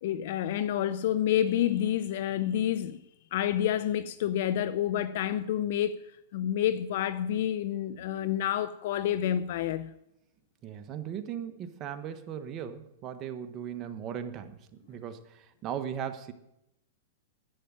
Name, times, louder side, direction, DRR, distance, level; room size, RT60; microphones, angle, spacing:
voice 1, 0.0-3.0 3.3-5.9 6.3-9.9, left 11 dB, 60° left, 0.6 m, -28 dB
voice 2, 10.6-14.6 14.9-16.3, right 9 dB, 30° right, 1.2 m, -38 dB
11.0 x 8.6 x 8.4 m
hypercardioid pair, 130°, 0 cm